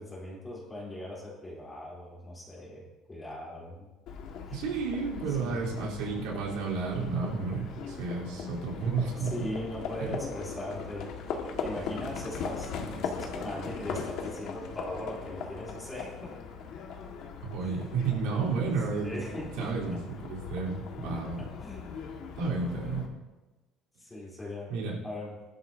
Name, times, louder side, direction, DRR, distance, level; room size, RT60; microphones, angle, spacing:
voice 1, 0.0-3.9 4.5-4.6 5.3-5.7 6.2-6.4 9.2-16.4 17.6-18.1 18.4-20.0 21.4-23.1 24.0-24.7 25.0-25.4, left 1 dB, 10° left, -6 dB, 3.7 m, -40 dB
Livestock farm animals working animals, 4.1-23.0, left 5 dB, 55° left, 1.7 m, -39 dB
voice 2, 4.5-9.3 10.0-10.2 17.4-19.2 19.6-21.4 22.3-23.1 24.7-24.9, right 4 dB, 90° right, -5 dB, 3.8 m, -32 dB
20.5 x 12.0 x 2.8 m, 1.1 s
cardioid pair, 175°, 0 cm